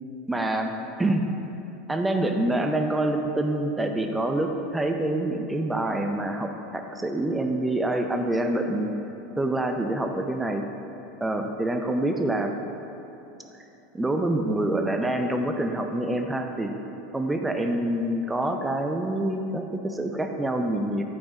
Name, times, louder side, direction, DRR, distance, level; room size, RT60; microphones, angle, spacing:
voice 1, 0.3-0.7 1.0-1.2 1.9-8.9 9.4-10.6 11.2-12.5 13.9-16.7 17.1-21.0, right 1 dB, 10° right, 4 dB, 0.6 m, -26 dB
8.4 x 4.4 x 4.4 m, 3.0 s
figure-of-eight pair, 80°, 0 cm